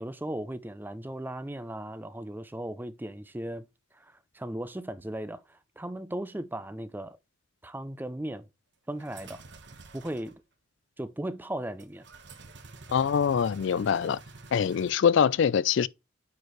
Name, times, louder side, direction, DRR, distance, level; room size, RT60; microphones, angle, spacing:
voice 1, 0.0-3.7 3.9-7.2 7.6-8.5 8.9-9.4 9.9-10.4 11.0-12.1, right 1 dB, 10° right, 0.4 m, -37 dB
sound 1, 9.0-10.3 11.8-14.9, right 3 dB, 55° right, 1.2 m, -48 dB
voice 2, 12.9-14.2 14.5-15.9, left 7 dB, 60° left, 0.3 m, -24 dB
9.4 x 4.5 x 3.1 m
head